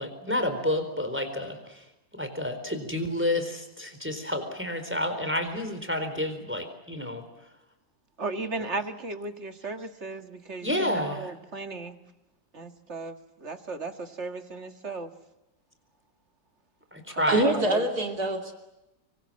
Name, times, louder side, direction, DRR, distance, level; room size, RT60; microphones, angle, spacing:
voice 1, 0.0-1.8 2.1-7.2 10.6-11.3 16.9-17.5, left 1 dB, 5° right, 8 dB, 4.1 m, -30 dB
voice 2, 8.2-12.0 12.5-13.2 13.4-15.1 17.2-17.8, right 3 dB, 40° right, 7 dB, 2.0 m, -35 dB
voice 3, 17.3-18.5, right 1 dB, 60° right, 3 dB, 3.3 m, -25 dB
26.0 x 25.0 x 7.6 m, 0.95 s
omnidirectional pair, 1.9 m